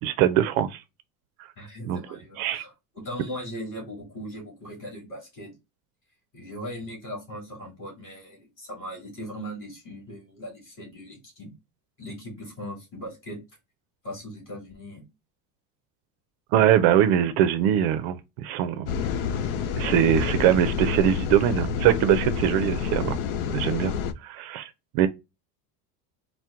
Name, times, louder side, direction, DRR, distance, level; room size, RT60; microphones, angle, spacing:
voice 1, 0.0-0.8 1.9-2.0 2.4-2.6 16.5-18.9 19.8-23.2 23.5-23.9 24.2-24.7 24.9-25.1, right 10 dB, 55° right, 0.5 m, -22 dB
voice 2, 1.6-5.5 6.3-11.5 12.0-13.4 14.0-15.0, equal, 30° left, 2.6 m, -39 dB
sound 1, 18.9-24.1, left 6 dB, 70° left, 0.6 m, -28 dB
4.4 x 2.1 x 3.5 m
cardioid pair, 175°, 43 cm